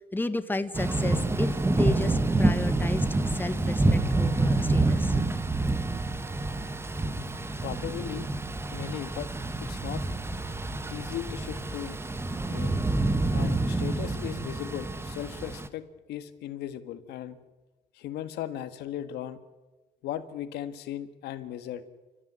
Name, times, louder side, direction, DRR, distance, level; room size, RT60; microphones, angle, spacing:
voice 1, 0.0-5.2, left 2 dB, 10° left, 11 dB, 1.5 m, -33 dB
Thunder / Rain, 0.7-15.7, right 2 dB, 15° right, 1.4 m, -27 dB
voice 2, 7.6-8.3 8.7-9.3 9.6-10.0 10.9-12.0 12.5-12.7 13.3-17.4 17.9-19.4 20.0-21.8, left 11 dB, 80° left, 11 dB, 1.7 m, -37 dB
28.5 x 14.0 x 9.7 m, 1.1 s
cardioid pair, 110°, 17 cm